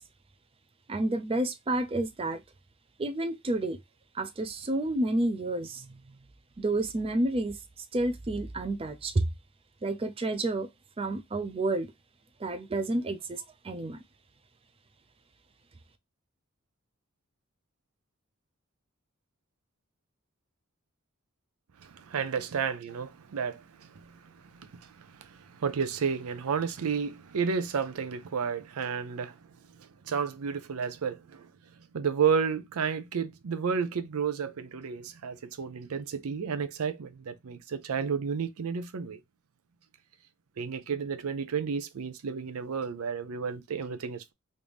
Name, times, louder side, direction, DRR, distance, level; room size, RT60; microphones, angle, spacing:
voice 1, 0.9-2.4 3.0-3.8 4.1-6.0 6.6-7.6 7.9-9.2 9.8-10.7 11.0-11.9 12.4-14.0, right 2 dB, 25° right, 0.4 m, -30 dB
voice 2, 21.8-29.4 29.8-31.5 31.9-39.2 40.6-44.3, right 6 dB, 85° right, 0.5 m, -32 dB
3.1 x 2.6 x 3.4 m
head